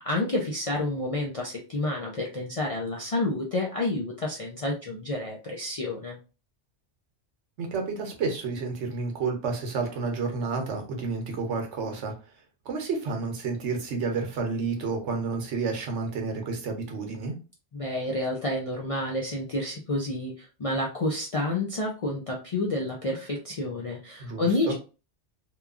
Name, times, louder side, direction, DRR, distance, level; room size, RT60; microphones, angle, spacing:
voice 1, 0.0-6.2 17.7-24.7, left 2 dB, 55° left, -1 dB, 0.4 m, -29 dB
voice 2, 7.6-12.1 12.7-17.3 24.2-24.7, right 4 dB, 80° right, 3 dB, 1.1 m, -30 dB
2.9 x 2.3 x 2.3 m, 0.33 s
omnidirectional pair, 1.2 m